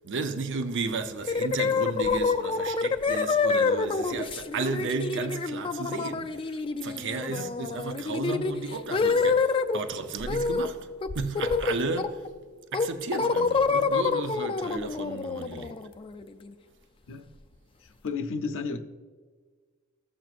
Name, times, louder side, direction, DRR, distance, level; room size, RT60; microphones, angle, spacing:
voice 1, 0.0-10.9 11.1-12.3 12.7-15.8, right 4 dB, 55° right, 0.7 m, -33 dB
sound 1, 1.2-9.8 10.3-10.7 11.0-12.3 12.7-16.5, left 4 dB, 25° left, 0.3 m, -27 dB
voice 2, 17.8-18.8, left 4 dB, 65° left, 0.6 m, -33 dB
15.0 x 7.6 x 2.5 m
head